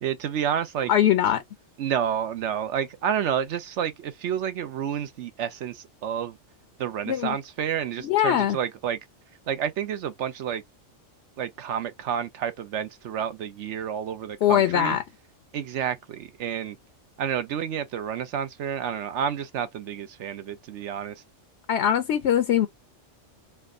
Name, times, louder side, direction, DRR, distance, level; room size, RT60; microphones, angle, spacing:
voice 1, 0.0-0.9 1.8-6.4 6.8-9.0 9.5-10.6 11.4-15.0 15.5-16.8 17.2-21.2, right 8 dB, 70° right, 1.0 m, -30 dB
voice 2, 0.9-1.4 7.1-7.4 8.0-8.6 14.4-15.0 21.7-22.7, left 10 dB, 65° left, 0.8 m, -21 dB
3.5 x 2.1 x 3.6 m
omnidirectional pair, 1.3 m